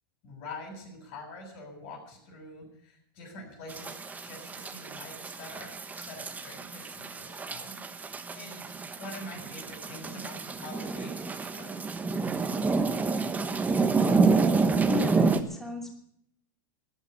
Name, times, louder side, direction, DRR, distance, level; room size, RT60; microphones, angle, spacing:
voice 1, 0.2-7.8 8.3-11.8, left 2 dB, 50° left, 2 dB, 7.3 m, -45 dB
sound 1, 3.7-15.4, right 4 dB, 15° right, 1.2 m, -29 dB
voice 2, 14.9-16.0, left 3 dB, 5° left, 1 dB, 2.6 m, -35 dB
13.0 x 11.0 x 8.4 m, 0.73 s
supercardioid pair, 125°, 11 cm